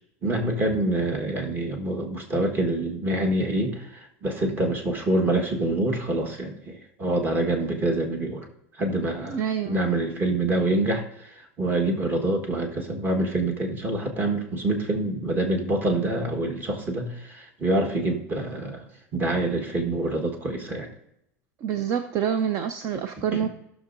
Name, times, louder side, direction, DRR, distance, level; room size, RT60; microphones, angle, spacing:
voice 1, 0.2-3.9 4.2-8.5 8.8-9.4 9.7-11.3 11.6-18.8 19.1-20.9 23.3-23.5, right 2 dB, 25° right, 3 dB, 1.4 m, -26 dB
voice 2, 9.3-9.8 21.6-23.5, right 8 dB, 45° right, 9 dB, 0.6 m, -27 dB
16.0 x 6.3 x 2.6 m, 0.82 s
supercardioid pair, 140°, 7 cm